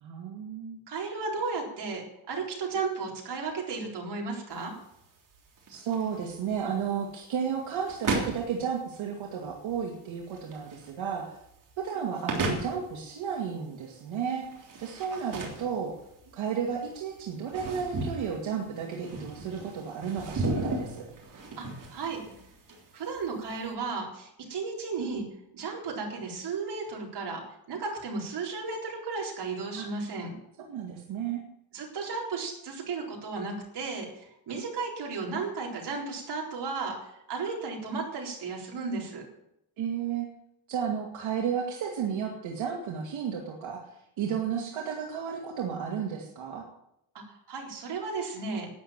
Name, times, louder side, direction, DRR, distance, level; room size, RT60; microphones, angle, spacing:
voice 1, 0.0-0.8 5.7-11.4 11.8-14.5 14.8-15.9 16.3-21.1 29.8-29.9 30.7-31.4 39.8-40.3 40.7-43.8 44.2-46.7, right 7 dB, 80° right, -1 dB, 2.4 m, -33 dB
voice 2, 0.9-4.7 21.6-22.2 22.9-25.2 25.5-30.4 31.7-39.2 47.1-48.7, right 4 dB, 60° right, -1 dB, 4.1 m, -34 dB
sound 1, 4.5-23.7, right 2 dB, 45° right, 3.5 m, -37 dB
12.0 x 9.6 x 7.5 m, 0.79 s
cardioid pair, 135°, 46 cm